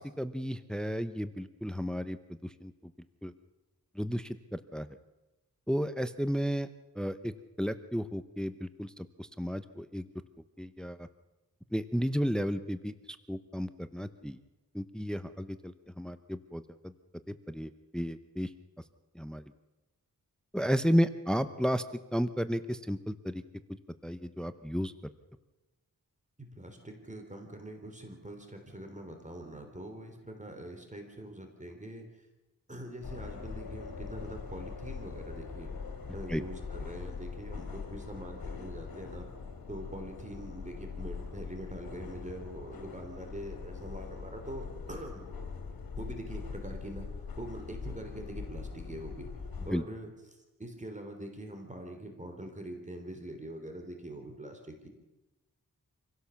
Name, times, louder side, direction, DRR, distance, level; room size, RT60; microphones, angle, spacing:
voice 1, 0.0-2.7 3.2-3.3 4.0-4.9 5.7-6.7 7.0-7.3 7.6-10.1 10.6-11.1 11.7-12.9 13.3-14.4 14.7-16.9 17.3-18.5 19.1-19.4 20.5-21.8 22.1-23.4 24.0-24.9 36.3-36.4 49.7-49.8, equal, ahead, 11 dB, 0.8 m, -33 dB
voice 2, 26.4-32.1 32.7-35.7 36.1-39.3 39.7-45.3 46.0-47.1 47.4-49.3 49.6-50.1 50.6-54.9, right 1 dB, 20° right, 4 dB, 3.5 m, -44 dB
sound 1, 33.0-49.7, left 5 dB, 85° left, 2.6 m, -42 dB
26.0 x 16.5 x 7.1 m, 1.1 s
wide cardioid pair, 110°, 35 cm